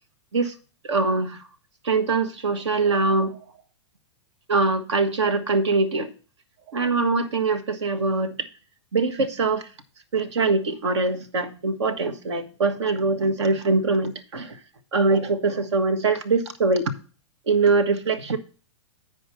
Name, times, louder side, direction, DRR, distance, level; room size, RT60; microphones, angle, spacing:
voice 1, 0.8-1.4 1.8-3.4 4.5-6.1 6.7-8.5 8.9-9.7 10.1-14.6 14.9-16.9 17.5-18.4, right 3 dB, 70° right, 9 dB, 1.3 m, -23 dB
9.1 x 5.0 x 5.6 m, 0.37 s
figure-of-eight pair, 105°, 15 cm